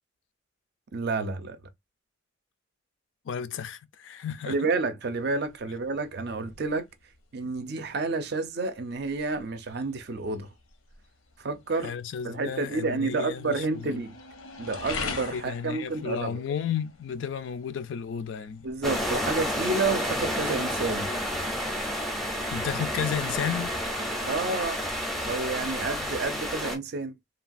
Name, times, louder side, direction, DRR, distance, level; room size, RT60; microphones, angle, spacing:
voice 1, 0.9-1.6 4.5-6.9 7.3-10.5 11.4-11.9 12.2-14.2 14.6-16.4 18.6-21.1 24.2-24.8 25.2-27.1, right 3 dB, 50° right, 0.5 m, -30 dB
voice 2, 3.2-4.7 11.8-14.0 15.3-18.7 22.5-23.8, left 7 dB, 65° left, 0.3 m, -33 dB
sound 1, 5.0-20.5, left 4 dB, 90° left, 0.7 m, -44 dB
sound 2, 18.8-26.8, equal, ahead, 0.5 m, -30 dB
3.2 x 2.3 x 2.5 m
head